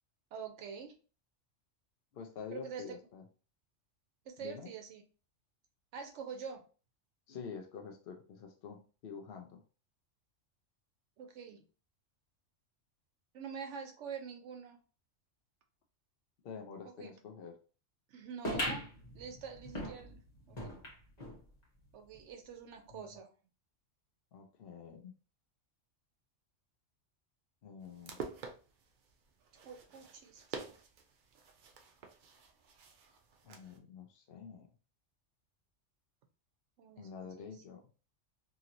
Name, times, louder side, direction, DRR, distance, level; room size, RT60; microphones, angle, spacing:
voice 1, 0.3-0.9 2.5-3.0 4.3-5.0 5.9-6.6 11.2-11.6 13.3-14.8 16.8-17.1 18.1-18.8 19.1-20.2 20.5-20.8 21.9-23.3 29.6-30.6 36.8-37.5, right 6 dB, 75° right, 5 dB, 0.9 m, -46 dB
voice 2, 2.1-3.2 4.4-4.7 7.3-9.6 16.4-17.6 22.9-23.2 24.3-25.1 27.6-28.3 33.4-34.7 37.0-37.8, left 6 dB, 60° left, 3 dB, 0.7 m, -47 dB
sound 1, 18.4-21.4 21.8-21.9 22.1-22.2 23.0-23.1, equal, 35° left, 1.1 m, -40 dB
sound 2, 27.8-33.8, right 5 dB, 60° right, 0.5 m, -49 dB
2.9 x 2.8 x 2.5 m, 0.36 s
omnidirectional pair, 1.3 m